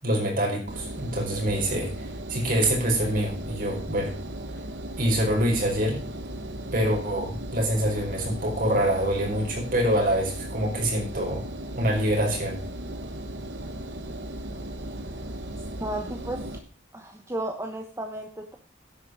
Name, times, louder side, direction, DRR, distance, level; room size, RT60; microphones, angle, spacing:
voice 1, 0.0-4.1 5.0-6.0 6.7-11.4 11.7-12.6, right 1 dB, 50° right, 0 dB, 4.9 m, -25 dB
Engine, 0.7-16.6, right 1 dB, 65° right, 1.4 m, -36 dB
voice 2, 15.8-16.5 16.9-18.6, right 1 dB, 15° right, 4 dB, 1.0 m, -33 dB
10.5 x 8.6 x 6.3 m, 0.40 s
head